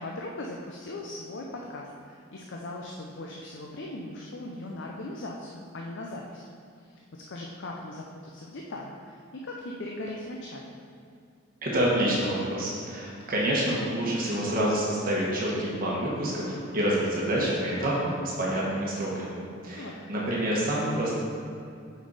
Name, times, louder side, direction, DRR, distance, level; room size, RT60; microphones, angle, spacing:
voice 1, 0.0-6.5 6.8-10.8 19.7-20.0, left 1 dB, 60° left, -1 dB, 0.6 m, -39 dB
voice 2, 11.6-19.4 19.6-21.2, right 1 dB, 45° right, -5 dB, 1.3 m, -27 dB
6.3 x 5.3 x 4.1 m, 2.5 s
head